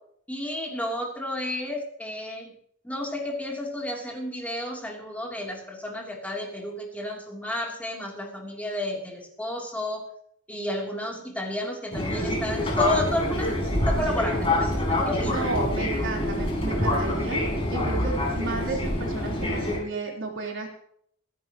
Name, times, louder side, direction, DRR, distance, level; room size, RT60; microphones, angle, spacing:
voice 1, 0.3-2.5 2.8-10.0 10.5-13.5 13.9-15.5, left 1 dB, 5° left, -1 dB, 3.3 m, -31 dB
Fixed-wing aircraft airplane, 11.9-19.8, left 1 dB, 30° left, 5.0 m, -26 dB
voice 2, 15.3-17.4 17.7-20.7, right 2 dB, 65° right, 0 dB, 4.0 m, -32 dB
26.0 x 11.0 x 3.1 m, 0.66 s
head